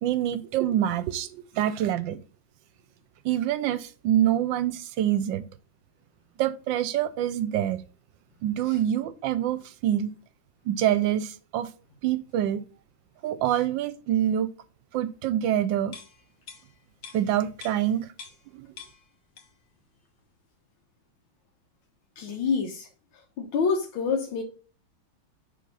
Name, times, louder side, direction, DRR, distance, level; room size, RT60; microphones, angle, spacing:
voice 1, 0.0-2.2 3.2-5.4 6.4-7.8 8.4-10.2 10.7-11.7 12.0-12.6 13.2-14.5 14.9-15.9 17.1-18.1 18.5-18.7, right 11 dB, 75° right, 1.2 m, -26 dB
sound 1, 15.9-18.5 18.8-19.7 20.1-20.2, left 6 dB, 60° left, 1.8 m, -47 dB
voice 2, 22.2-22.9 23.4-24.4, left 5 dB, 85° left, 1.7 m, -27 dB
6.5 x 3.7 x 5.5 m
omnidirectional pair, 2.2 m